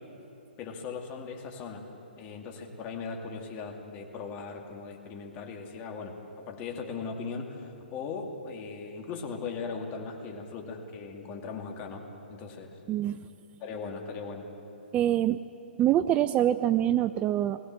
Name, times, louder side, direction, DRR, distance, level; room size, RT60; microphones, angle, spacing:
voice 1, 0.6-1.8 2.2-6.2 6.5-12.0 12.3-12.8 13.6-14.5, left 5 dB, 30° left, 2 dB, 2.4 m, -38 dB
voice 2, 12.9-13.3 14.9-15.4 15.8-17.6, right 12 dB, 20° right, 13 dB, 0.4 m, -25 dB
20.5 x 16.5 x 7.6 m, 2.9 s
figure-of-eight pair, 125°, 6 cm